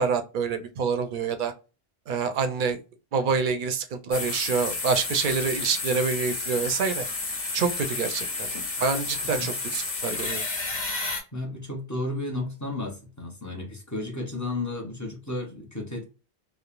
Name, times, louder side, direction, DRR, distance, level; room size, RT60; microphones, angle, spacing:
voice 1, 0.0-1.5 2.1-2.8 3.1-7.0 7.5-8.5 8.8-10.4, right 5 dB, 60° right, 0.6 m, -26 dB
sound 1, 4.1-11.2, left 3 dB, 65° left, 1.1 m, -31 dB
voice 2, 11.3-16.0, left 2 dB, 20° left, 0.7 m, -33 dB
3.1 x 2.0 x 2.4 m
omnidirectional pair, 1.0 m